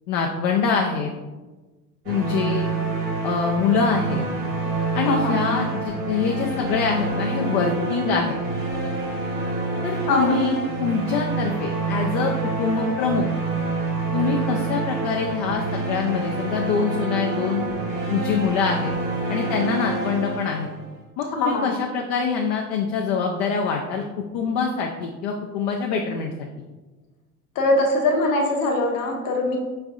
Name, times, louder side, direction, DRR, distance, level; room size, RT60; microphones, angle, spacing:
voice 1, 0.1-1.1 2.1-2.7 3.2-4.2 4.9-8.4 9.8-13.3 14.1-17.7 18.1-18.9 19.3-20.7 21.2-26.3, left 5 dB, 60° left, 1 dB, 0.5 m, -24 dB
sound 1, 2.1-21.0, right 3 dB, 80° right, 1.2 m, -27 dB
voice 2, 10.1-10.4 21.4-21.7 27.6-29.6, left 2 dB, 45° left, 1 dB, 1.0 m, -22 dB
5.1 x 3.3 x 2.4 m, 1.2 s
figure-of-eight pair, 65°, 46 cm